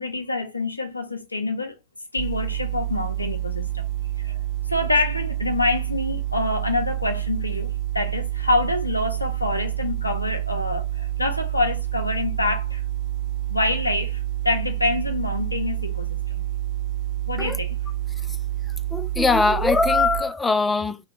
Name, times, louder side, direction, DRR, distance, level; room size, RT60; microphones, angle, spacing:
voice 1, 0.0-1.7 2.1-3.9 4.2-4.4 4.7-12.8 13.5-16.4 17.3-17.8, left 2 dB, 85° left, 0.4 m, -26 dB
sound 1, 2.2-20.2, right 14 dB, 40° right, 0.9 m, -28 dB
voice 2, 18.9-21.0, left 3 dB, 10° left, 0.3 m, -21 dB
2.6 x 2.2 x 3.9 m
figure-of-eight pair, 90°, 0 cm